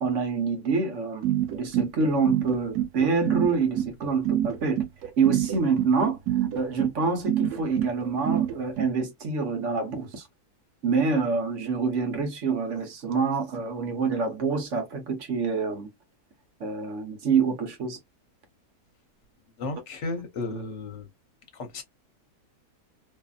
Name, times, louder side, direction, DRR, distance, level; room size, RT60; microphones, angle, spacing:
voice 1, 0.0-4.8 5.2-6.2 6.5-10.2 10.8-15.9 16.6-18.0, right 5 dB, 55° right, 1.0 m, -26 dB
sound 1, 1.2-8.9, right 12 dB, 80° right, 1.1 m, -26 dB
voice 2, 19.6-21.1 21.5-21.8, left 2 dB, 55° left, 1.1 m, -34 dB
2.7 x 2.6 x 2.3 m
omnidirectional pair, 1.6 m